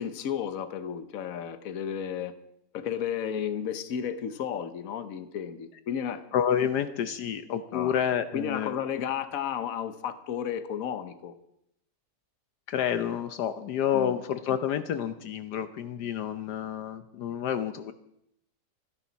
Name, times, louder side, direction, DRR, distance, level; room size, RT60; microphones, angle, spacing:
voice 1, 0.0-2.4 2.7-6.2 7.7-7.9 8.3-11.3 13.9-14.1, left 8 dB, 60° left, 10 dB, 1.3 m, -33 dB
voice 2, 6.3-8.7 12.7-17.9, left 9 dB, 75° left, 10 dB, 1.3 m, -29 dB
25.0 x 10.5 x 4.1 m, 0.77 s
omnidirectional pair, 1.8 m